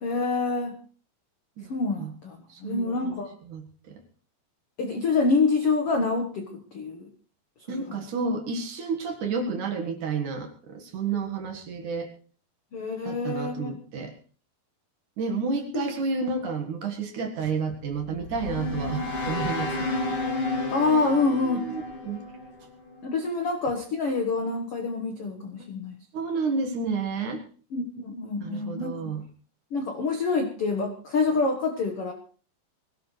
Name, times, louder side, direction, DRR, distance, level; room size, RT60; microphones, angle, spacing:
voice 1, 0.0-0.8 1.7-3.3 4.8-7.1 12.7-13.8 15.7-15.9 20.7-21.6 23.0-26.0 27.7-29.1 29.7-32.1, left 3 dB, 65° left, 4 dB, 1.4 m, -26 dB
voice 2, 1.6-2.1 2.5-4.0 7.7-12.1 13.0-14.1 15.2-20.1 21.4-22.2 25.6-25.7 26.1-27.4 28.4-29.2, right 4 dB, 60° right, 3 dB, 2.7 m, -31 dB
sound 1, 17.9-23.1, left 2 dB, 40° left, 2.7 m, -31 dB
21.5 x 17.0 x 3.3 m, 0.41 s
omnidirectional pair, 4.7 m